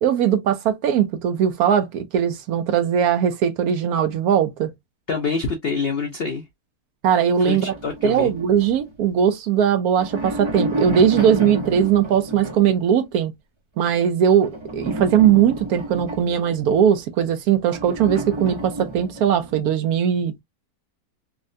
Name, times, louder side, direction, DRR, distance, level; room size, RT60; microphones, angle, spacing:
voice 1, 0.0-4.7 7.0-7.7 8.0-13.3 13.8-20.3, right 8 dB, 70° right, 0.9 m, -19 dB
voice 2, 5.1-6.4 7.5-8.3, left 4 dB, 70° left, 0.5 m, -25 dB
sound 1, 7.7-9.3 9.8-12.9 14.4-17.0 17.7-19.6, right 1 dB, 45° right, 0.3 m, -30 dB
3.5 x 2.1 x 2.4 m
omnidirectional pair, 1.8 m